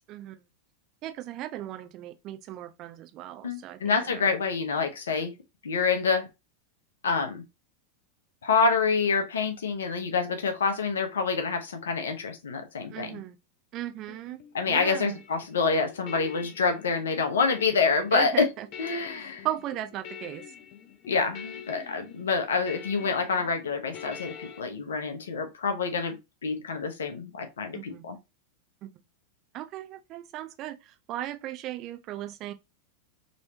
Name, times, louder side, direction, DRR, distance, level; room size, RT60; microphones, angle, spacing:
voice 1, 0.1-0.4 1.0-4.3 12.9-13.4 13.7-14.4 14.7-15.2 18.1-18.7 19.2-20.5 27.7-28.1 28.8-29.0 29.5-32.5, right 13 dB, 35° right, 0.5 m, -37 dB
voice 2, 3.4-5.3 5.6-6.3 7.0-7.4 8.4-13.2 14.5-18.5 18.8-19.5 21.1-26.2 26.4-28.2, left 5 dB, 65° left, 0.8 m, -27 dB
sound 1, 14.1-24.6, left 7 dB, 40° left, 0.6 m, -45 dB
3.1 x 3.0 x 2.7 m
figure-of-eight pair, 90°, 0 cm